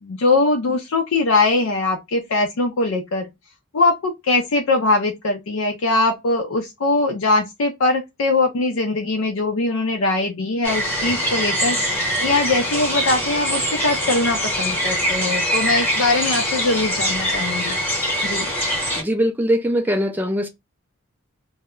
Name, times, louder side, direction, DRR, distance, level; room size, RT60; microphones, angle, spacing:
voice 1, 0.0-3.3 3.7-17.8 18.2-18.5, left 2 dB, 70° left, 0.5 m, -21 dB
sound 1, 10.6-19.0, equal, 10° left, 0.9 m, -23 dB
voice 2, 19.0-20.5, equal, 10° right, 0.3 m, -21 dB
2.1 x 2.0 x 3.5 m
head